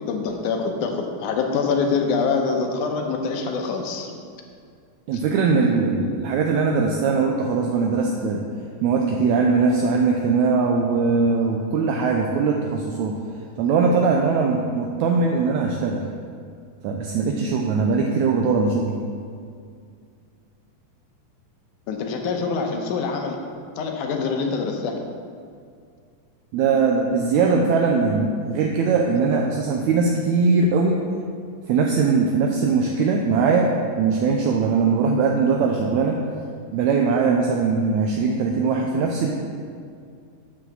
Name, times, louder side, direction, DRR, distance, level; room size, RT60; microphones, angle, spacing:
voice 1, 0.1-4.1 21.9-23.4 23.8-25.0, left 5 dB, 75° left, 3 dB, 2.2 m, -25 dB
voice 2, 5.1-8.4 8.8-13.1 13.6-16.0 16.8-18.9 26.5-31.0 31.7-36.2 36.7-39.3, right 4 dB, 80° right, 1 dB, 1.7 m, -21 dB
7.9 x 6.2 x 7.2 m, 2.2 s
omnidirectional pair, 3.9 m